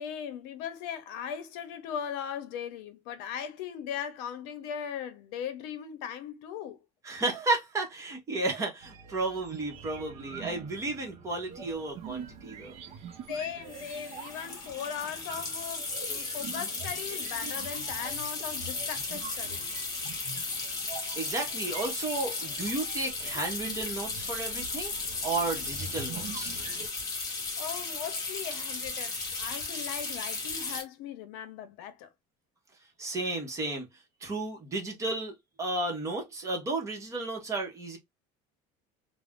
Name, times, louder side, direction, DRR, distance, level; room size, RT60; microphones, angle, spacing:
voice 1, 0.0-6.8 13.3-19.6 27.6-32.1, left 8 dB, 90° left, 0.6 m, -38 dB
voice 2, 7.0-12.7 21.2-24.9 25.2-26.6 33.0-33.9 34.2-35.3 35.6-38.0, right 2 dB, 20° right, 0.9 m, -33 dB
sound 1, 8.8-26.9, right 5 dB, 40° right, 0.6 m, -45 dB
sound 2, 11.7-11.8 12.0-12.3 13.7-30.8, left 3 dB, 25° left, 0.9 m, -35 dB
2.4 x 2.0 x 3.4 m
cardioid pair, 165°, 15 cm